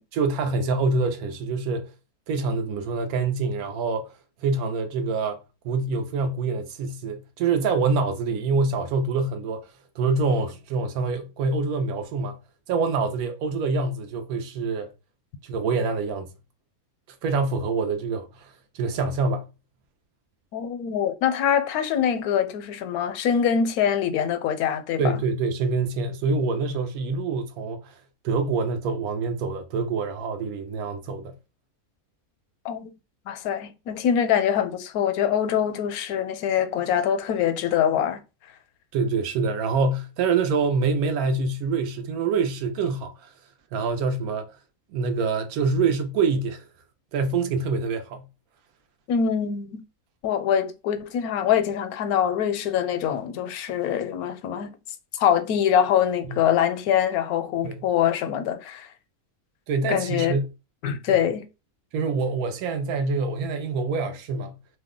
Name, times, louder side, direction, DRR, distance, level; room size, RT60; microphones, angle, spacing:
voice 1, 0.1-1.9 2.3-4.1 4.4-9.7 10.0-12.4 12.7-14.9 15.4-16.3 17.2-19.5 25.0-28.0 28.2-31.3 38.9-43.3 43.7-44.5 44.9-46.6 47.1-48.2 57.6-57.8 59.7-60.4 61.1-61.3 61.9-64.6, right 4 dB, 80° right, 1.0 m, -26 dB
voice 2, 20.5-25.2 32.6-32.9 33.3-38.2 49.1-49.8 50.2-54.7 55.1-58.9 59.9-60.4 60.8-61.5, left 9 dB, 85° left, 1.1 m, -24 dB
2.8 x 2.1 x 3.6 m
omnidirectional pair, 1.5 m